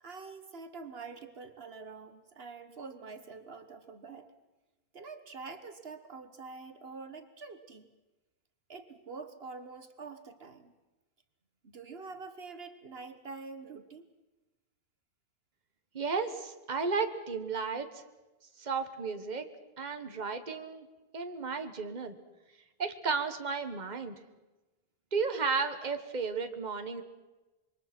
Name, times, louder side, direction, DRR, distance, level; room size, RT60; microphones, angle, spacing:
voice 1, 0.0-4.3 4.9-7.9 8.7-10.7 11.6-14.1, right 4 dB, 70° right, 9 dB, 1.6 m, -46 dB
voice 2, 15.9-18.0 18.6-19.5 19.8-20.9 21.1-22.2 22.8-24.1 25.1-27.0, right 4 dB, 45° right, 7 dB, 1.5 m, -33 dB
26.5 x 23.0 x 6.0 m, 1.1 s
omnidirectional pair, 1.0 m